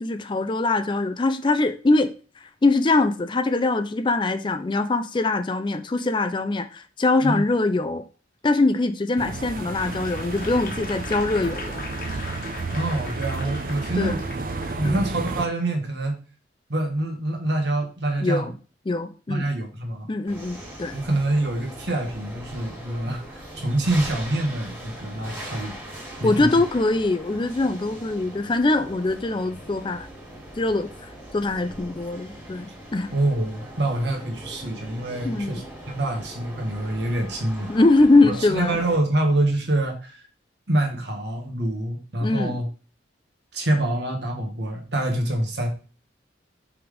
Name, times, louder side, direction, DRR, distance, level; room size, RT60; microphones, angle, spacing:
voice 1, 0.0-2.1 2.6-8.0 8.4-11.8 13.9-14.2 14.8-15.0 18.2-18.5 18.9-19.4 20.1-20.9 26.2-30.1 30.6-30.9 31.3-33.1 35.2-35.6 37.7-38.8 42.2-42.6, left 2 dB, 25° left, 0.4 m, -22 dB
sound 1, 9.2-15.5, right 3 dB, 50° right, 0.5 m, -32 dB
Applause / Crowd, 9.7-15.4 15.9-16.1, left 3 dB, 50° left, 1.2 m, -39 dB
voice 2, 12.7-14.2 14.7-16.2 16.7-18.5 19.3-20.1 20.9-25.7 26.2-26.5 33.1-37.7 38.2-40.3 40.7-42.7 43.5-45.7, right 1 dB, 65° right, 1.6 m, -26 dB
sound 2, 20.3-39.0, right 1 dB, 10° right, 2.6 m, -40 dB
5.9 x 3.6 x 5.0 m
head